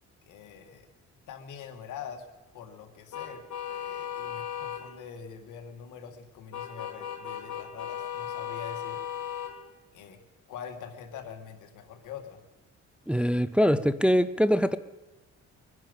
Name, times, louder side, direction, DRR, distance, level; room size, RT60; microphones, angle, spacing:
voice 1, 0.3-0.9 1.3-2.2 2.5-3.4 3.7-9.0 9.9-10.2 10.5-12.4, left 7 dB, 80° left, 5 dB, 2.0 m, -44 dB
sound 1, 3.1-4.8 6.5-9.5, left 10 dB, 65° left, 2.7 m, -36 dB
voice 2, 13.1-14.8, equal, 5° right, 14 dB, 0.5 m, -23 dB
23.0 x 10.5 x 5.3 m, 1.1 s
cardioid pair, 90°, 30 cm